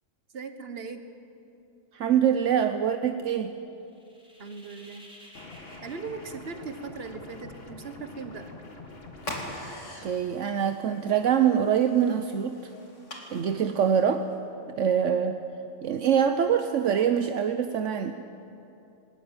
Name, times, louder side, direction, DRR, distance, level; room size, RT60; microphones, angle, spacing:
voice 1, 0.3-1.0 4.4-5.0 5.8-8.5, right 4 dB, 50° right, 8 dB, 1.6 m, -39 dB
voice 2, 1.9-3.5 10.0-12.6 13.3-14.2 14.8-15.4 15.8-18.1, right 8 dB, 75° right, 8 dB, 1.1 m, -24 dB
sound 1, 3.8-7.4, equal, 5° right, 4.6 m, -53 dB
sound 2, 5.3-9.7, left 3 dB, 50° left, 2.1 m, -46 dB
sound 3, 9.2-14.4, left 1 dB, 70° left, 3.0 m, -43 dB
20.0 x 18.5 x 9.0 m, 2.7 s
omnidirectional pair, 1.3 m